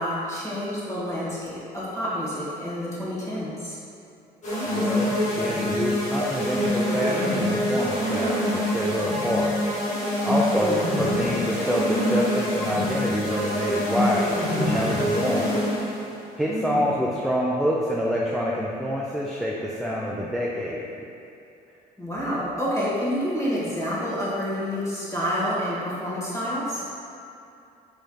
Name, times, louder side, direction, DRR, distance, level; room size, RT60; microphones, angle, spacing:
voice 1, 0.0-3.8 10.5-10.8 16.5-17.0 22.0-26.8, equal, 15° left, -7 dB, 1.3 m, -28 dB
sound 1, 4.4-16.0, left 1 dB, 45° left, 1.2 m, -25 dB
voice 2, 4.7-9.5 10.2-15.6 16.4-19.5 19.8-20.8, equal, ahead, -5 dB, 0.4 m, -27 dB
4.7 x 3.1 x 2.2 m, 2.6 s
supercardioid pair, 80°, 18 cm